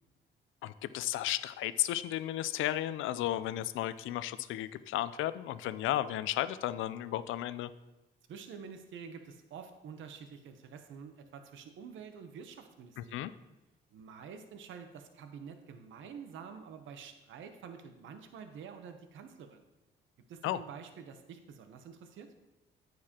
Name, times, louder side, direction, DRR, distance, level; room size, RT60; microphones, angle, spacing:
voice 1, 0.6-7.7 13.0-13.3 20.4-20.6, left 13 dB, 85° left, 15 dB, 0.4 m, -34 dB
voice 2, 8.3-13.4 13.9-19.6 20.3-22.3, right 6 dB, 75° right, 7 dB, 0.8 m, -48 dB
9.5 x 9.2 x 2.9 m, 1.0 s
cardioid pair, 90°, 20 cm